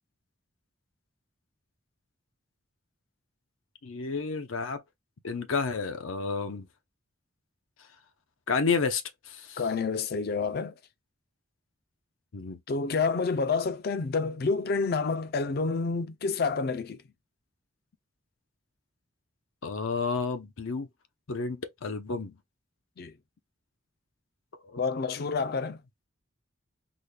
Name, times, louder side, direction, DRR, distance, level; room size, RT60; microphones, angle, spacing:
voice 1, 3.8-4.8 5.2-6.7 8.5-9.6 12.3-12.6 19.6-20.9 21.3-22.4 24.6-25.6, left 4 dB, 90° left, 0.7 m, -31 dB
voice 2, 9.6-10.7 12.7-17.0 23.0-23.1 24.8-25.8, left 4 dB, 50° left, 0.4 m, -28 dB
4.0 x 2.2 x 3.3 m
head